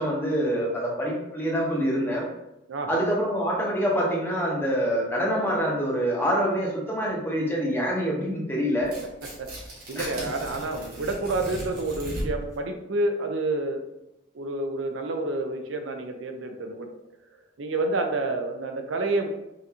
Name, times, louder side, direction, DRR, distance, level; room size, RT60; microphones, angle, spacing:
voice 1, 0.0-2.2 2.9-8.9 9.9-10.3, equal, 10° left, -4 dB, 1.0 m, -26 dB
voice 2, 2.7-3.0 9.2-9.5 9.9-13.8 14.3-16.9 17.6-19.3, right 2 dB, 75° right, 5 dB, 0.5 m, -29 dB
Tearing, 8.8-12.5, right 1 dB, 45° right, 1.3 m, -37 dB
5.7 x 2.6 x 2.8 m, 0.89 s
head